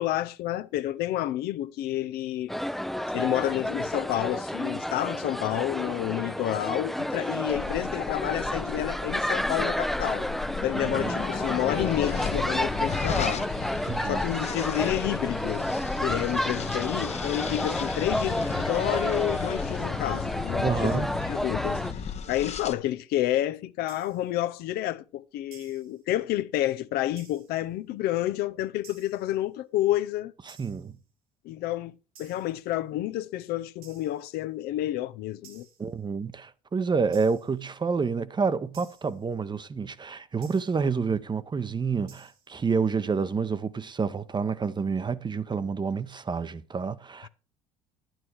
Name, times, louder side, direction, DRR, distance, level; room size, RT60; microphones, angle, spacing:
voice 1, 0.0-2.5 3.1-10.3 10.6-13.5 14.0-15.7 16.0-30.3 31.4-35.7 47.2-47.3, left 14 dB, 60° left, 0.6 m, -29 dB
sound 1, 2.5-21.9, equal, ahead, 0.6 m, -31 dB
sound 2, 7.5-22.7, left 7 dB, 35° left, 1.0 m, -34 dB
voice 2, 13.9-14.2 20.6-21.2 30.5-31.0 35.8-47.3, right 5 dB, 25° right, 0.9 m, -28 dB
sound 3, 23.9-24.4 25.5-26.0 27.2-27.6 28.8-29.4 30.5-30.9 32.2-32.6 33.8-34.3 35.4-35.9 37.1-37.6 38.7-39.2 40.4-40.9 42.1-42.5, right 6 dB, 90° right, 3.4 m, -54 dB
11.0 x 9.1 x 4.6 m
hypercardioid pair, 70°, 18 cm